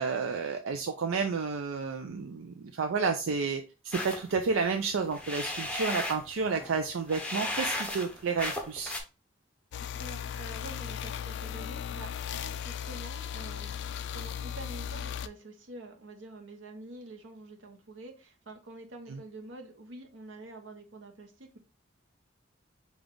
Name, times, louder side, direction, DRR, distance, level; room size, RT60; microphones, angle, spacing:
voice 1, 0.0-8.9 19.1-19.2, right 5 dB, 85° right, 6 dB, 0.4 m, -31 dB
sound 1, 3.9-9.0, left 2 dB, 5° left, 0.6 m, -36 dB
sound 2, 9.7-15.3, left 8 dB, 60° left, 0.3 m, -37 dB
voice 2, 10.0-21.6, right 2 dB, 65° right, 4 dB, 0.9 m, -47 dB
5.2 x 2.4 x 3.7 m, 0.30 s
head